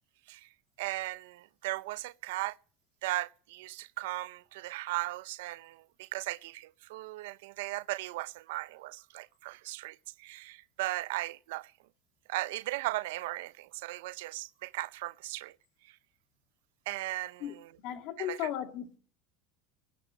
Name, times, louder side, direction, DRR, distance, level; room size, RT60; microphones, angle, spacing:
voice 1, 0.8-2.6 3.0-11.7 12.3-15.6 15.8-16.0 16.9-17.7 18.2-18.5, right 19 dB, 90° right, 0.6 m, -37 dB
voice 2, 17.8-19.0, left 11 dB, 60° left, 2.3 m, -35 dB
11.5 x 9.7 x 9.4 m
supercardioid pair, 140°, 0 cm